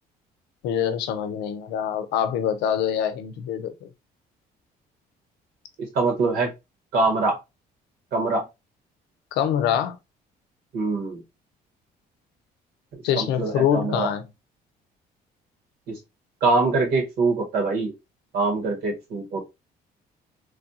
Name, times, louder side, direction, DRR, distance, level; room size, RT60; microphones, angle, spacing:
voice 1, 0.6-3.9 9.3-10.0 13.0-14.2, left 9 dB, 85° left, 0.6 m, -25 dB
voice 2, 5.8-6.5 6.9-7.4 8.1-8.4 10.7-11.2 13.2-14.1 15.9-16.0 16.4-17.9 18.3-19.5, right 3 dB, 70° right, 1.6 m, -23 dB
3.3 x 2.4 x 2.7 m
cardioid pair, 110°, 17 cm